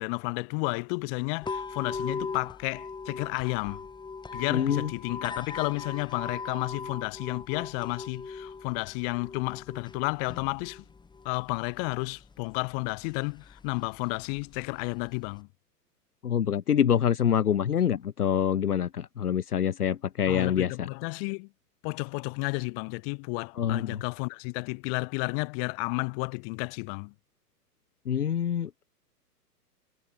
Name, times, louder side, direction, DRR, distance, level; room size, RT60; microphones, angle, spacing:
voice 1, 0.0-3.8 4.3-10.8 11.2-15.5 20.3-21.5 21.8-27.1, left 36 dB, 35° left, 3.1 m, -32 dB
sound 1, 1.4-15.4, left 4 dB, 10° left, 4.1 m, -40 dB
voice 2, 4.5-4.9 16.2-20.9 23.6-24.0 28.1-28.8, left 9 dB, 65° left, 1.7 m, -26 dB
figure-of-eight pair, 110°, 48 cm